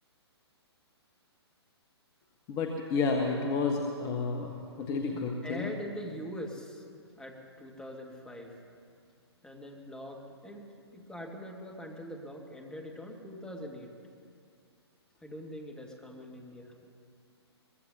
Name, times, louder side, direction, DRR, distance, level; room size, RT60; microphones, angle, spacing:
voice 1, 2.5-5.7, left 4 dB, 25° left, 2 dB, 1.2 m, -31 dB
voice 2, 5.1-6.8 7.2-8.5 9.4-13.9 15.2-16.8, equal, 5° left, 0 dB, 1.8 m, -43 dB
22.5 x 22.0 x 2.8 m, 2.3 s
figure-of-eight pair, 125°, 14 cm